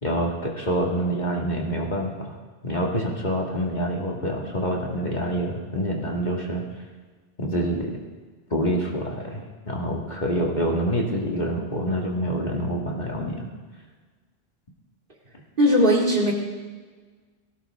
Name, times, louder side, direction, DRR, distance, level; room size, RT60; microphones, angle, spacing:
voice 1, 0.0-2.3 2.6-6.6 7.4-7.9 8.5-13.5, equal, 45° left, -1 dB, 2.1 m, -26 dB
voice 2, 15.6-16.3, equal, 50° right, -2 dB, 2.7 m, -18 dB
18.0 x 16.5 x 3.6 m, 1.4 s
omnidirectional pair, 1.1 m